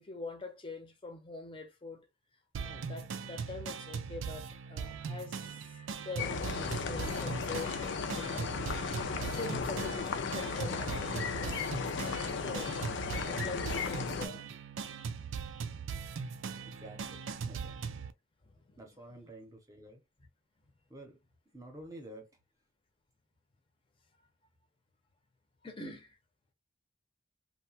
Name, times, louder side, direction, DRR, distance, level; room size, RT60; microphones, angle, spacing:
voice 1, 0.0-2.1 2.6-8.5 9.1-11.5 12.4-12.7 13.0-14.4 18.5-18.8 25.6-26.2, left 3 dB, 25° left, 0.7 m, -44 dB
sound 1, 2.5-18.1, right 6 dB, 85° right, 0.4 m, -40 dB
sound 2, 6.2-14.3, left 5 dB, 70° left, 0.4 m, -35 dB
voice 2, 16.6-17.8 18.8-20.0 20.9-21.2 21.5-22.3, right 1 dB, 15° right, 0.8 m, -50 dB
2.8 x 2.2 x 2.8 m
head